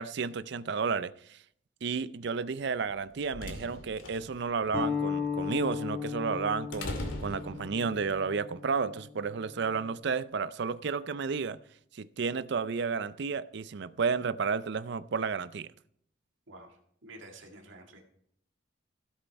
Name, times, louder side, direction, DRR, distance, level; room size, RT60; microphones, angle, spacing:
voice 1, 0.0-1.4 1.8-11.6 11.9-15.7, right 5 dB, 60° right, 0.5 m, -32 dB
sound 1, 2.8-8.1, left 1 dB, 75° left, 2.4 m, -42 dB
sound 2, 4.7-9.9, left 6 dB, 15° left, 2.2 m, -36 dB
voice 2, 16.5-18.0, right 2 dB, 75° right, 1.8 m, -50 dB
15.5 x 8.1 x 4.6 m
head